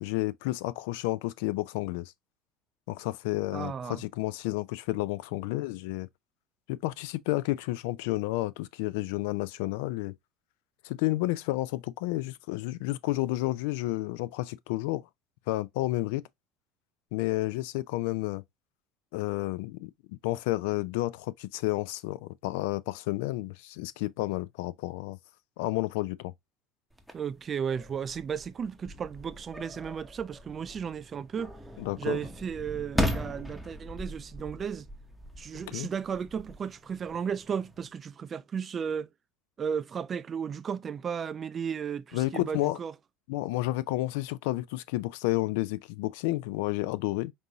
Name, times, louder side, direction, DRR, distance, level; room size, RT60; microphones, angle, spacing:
voice 1, 0.0-2.1 2.9-6.1 6.7-10.1 10.8-15.0 15.5-16.2 17.1-18.4 19.1-19.9 20.2-25.2 25.6-26.3 31.8-32.2 35.7-35.9 42.1-42.8 43.3-47.3, left 18 dB, 80° left, 0.3 m, -31 dB
voice 2, 3.5-4.0 27.1-31.5 32.0-34.9 35.4-39.1 39.6-43.0, right 7 dB, 30° right, 0.3 m, -34 dB
sound 1, 26.9-37.9, left 1 dB, ahead, 0.8 m, -38 dB
5.3 x 2.6 x 2.8 m
supercardioid pair, 120°, 0 cm